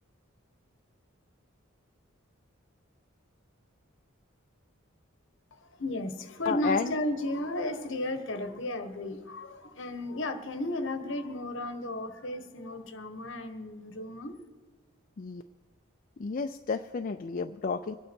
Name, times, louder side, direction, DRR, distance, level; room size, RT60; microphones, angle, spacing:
voice 1, 5.5-14.4, left 1 dB, 60° left, 1.2 m, -34 dB
voice 2, 6.5-6.9 15.2-15.4 16.2-17.9, left 4 dB, 40° left, 0.4 m, -31 dB
25.5 x 9.2 x 4.5 m
head